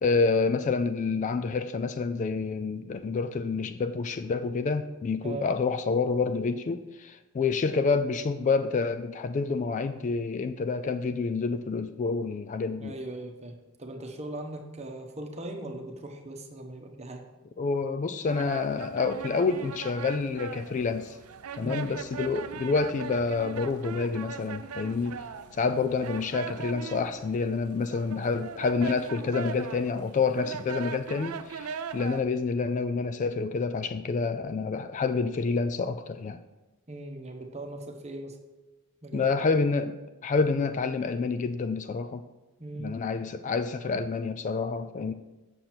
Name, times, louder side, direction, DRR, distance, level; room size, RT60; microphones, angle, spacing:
voice 1, 0.0-13.0 17.6-21.2 21.5-25.2 25.6-36.4 39.1-42.2 42.8-45.1, left 4 dB, 35° left, 9 dB, 0.3 m, -28 dB
voice 2, 12.8-17.2 21.6-21.9 36.9-38.4 39.0-39.3 42.6-43.0, right 2 dB, 30° right, 4 dB, 0.9 m, -39 dB
sound 1, 18.2-32.2, right 6 dB, 70° right, 0.5 m, -40 dB
7.6 x 6.6 x 4.3 m, 1.1 s
head